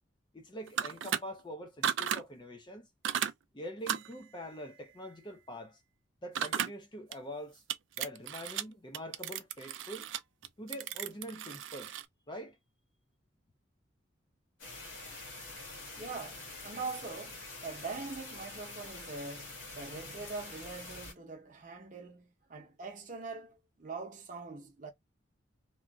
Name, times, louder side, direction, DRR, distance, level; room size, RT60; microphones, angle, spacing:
voice 1, 0.3-2.9 3.5-5.8 6.2-7.6 8.0-10.1 10.6-12.0 12.3-12.6, equal, 25° left, 0.5 m, -44 dB
sound 1, 0.7-1.2 1.8-2.2 3.0-3.3 3.9-4.1 6.4-6.7 7.1-7.2 7.7-8.6 8.9-12.1, right 9 dB, 70° right, 0.3 m, -34 dB
sound 2, 14.6-21.1, left 3 dB, 75° left, 1.6 m, -46 dB
voice 2, 16.0-24.9, right 4 dB, 40° right, 0.8 m, -43 dB
3.0 x 2.5 x 2.3 m
head